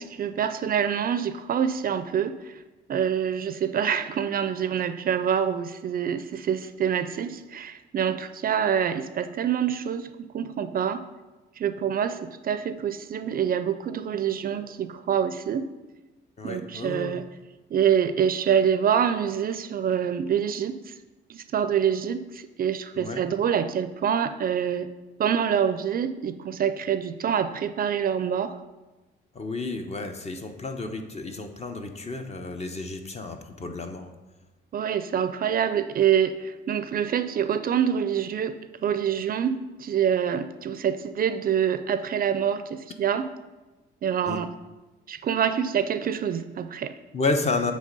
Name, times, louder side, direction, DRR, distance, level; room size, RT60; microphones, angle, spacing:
voice 1, 0.0-2.6 2.9-11.0 11.6-15.7 16.4-17.3 17.7-20.9 21.3-24.9 25.2-28.6 34.7-43.3 44.0-44.5 45.1-46.9, right 8 dB, 45° right, 11 dB, 0.4 m, -26 dB
voice 2, 16.4-17.2 23.0-23.2 29.3-34.1 44.3-44.4 47.1-47.7, left 3 dB, 35° left, 6 dB, 0.8 m, -31 dB
7.6 x 3.2 x 5.3 m, 1.1 s
cardioid pair, 90°, 20 cm